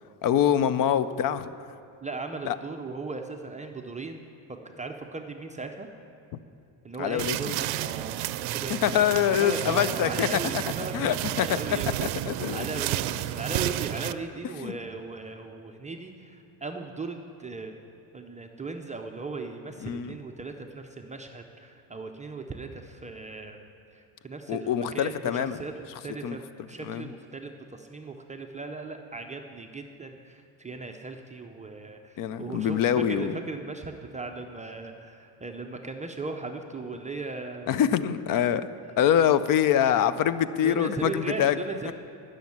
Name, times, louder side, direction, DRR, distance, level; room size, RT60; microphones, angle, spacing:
voice 1, 0.2-1.5 2.5-2.6 7.0-7.6 8.7-10.6 10.9-11.5 12.3-12.7 14.6-14.8 19.8-20.1 24.5-25.6 26.2-26.4 26.8-27.1 32.2-33.4 37.7-38.7 39.0-41.6, left 9 dB, 45° left, 14 dB, 0.5 m, -25 dB
voice 2, 2.0-4.2 4.8-5.9 6.8-9.0 9.3-11.9 12.5-17.7 18.1-23.6 23.9-26.4 26.7-37.7 40.6-41.9, right 3 dB, 15° right, 4 dB, 0.5 m, -37 dB
sound 1, 7.2-14.1, right 14 dB, 85° right, 0.5 m, -31 dB
11.5 x 6.4 x 9.5 m, 2.5 s
cardioid pair, 125°, 46 cm